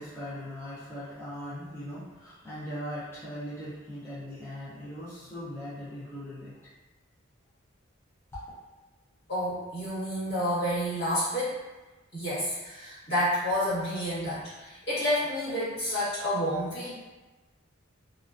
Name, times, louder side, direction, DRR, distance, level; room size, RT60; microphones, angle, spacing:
voice 1, 0.0-6.5 8.3-8.4, equal, 10° left, -12 dB, 0.5 m, -39 dB
voice 2, 9.3-11.5 12.1-16.9, equal, 55° left, -11 dB, 1.3 m, -29 dB
2.3 x 2.2 x 2.3 m, 1.1 s
head